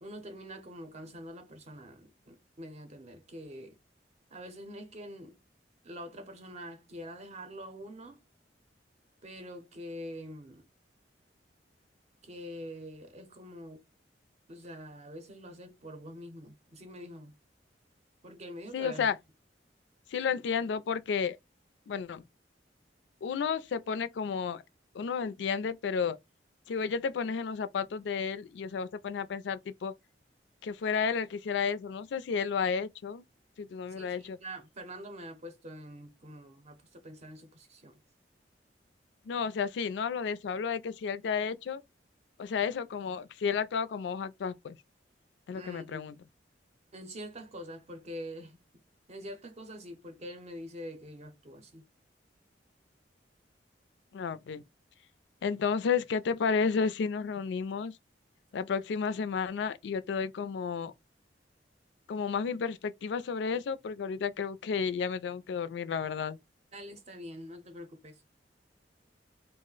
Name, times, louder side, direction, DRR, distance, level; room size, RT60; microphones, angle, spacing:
voice 1, 0.0-3.8 4.3-5.4 5.8-8.2 9.2-10.6 12.2-13.9 14.5-17.3 18.2-19.1 33.9-38.0 45.5-46.1 46.9-48.6 49.1-51.9 66.7-68.2, equal, 40° right, 0.6 m, -45 dB
voice 2, 18.7-19.2 20.1-21.4 21.9-22.2 23.2-24.6 24.9-26.2 26.7-29.9 30.6-33.2 33.6-34.4 39.3-41.8 42.4-44.8 45.5-46.1 54.1-54.6 55.4-57.9 58.5-60.9 62.1-66.4, left 6 dB, 75° left, 0.3 m, -32 dB
2.4 x 2.0 x 3.8 m
head